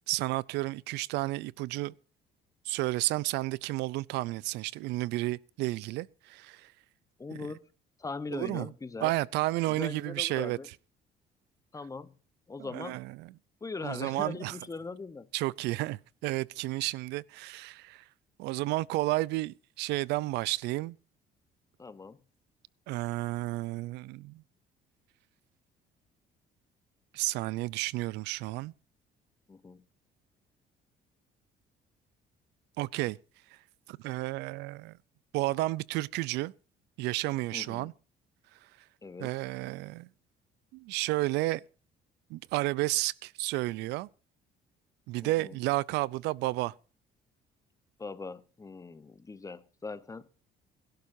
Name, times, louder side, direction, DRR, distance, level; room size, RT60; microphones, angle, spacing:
voice 1, 0.1-1.9 2.7-6.7 8.3-8.7 9.0-10.6 12.6-13.3 13.8-14.6 15.3-18.0 18.4-21.0 22.9-24.4 27.1-28.7 32.8-33.2 33.9-35.0 35.3-36.5 37.0-37.9 39.2-40.1 40.7-41.6 42.3-44.1 45.1-46.7, right 19 dB, 90° right, 0.5 m, -31 dB
voice 2, 7.2-7.7 8.0-9.1 9.7-10.7 11.7-12.1 12.5-13.0 13.6-15.3 21.8-22.2 29.5-29.8 37.5-37.9 39.0-39.3 45.2-45.6 48.0-50.3, left 4 dB, 20° left, 1.1 m, -40 dB
22.0 x 12.0 x 2.7 m
cardioid pair, 110°, 17 cm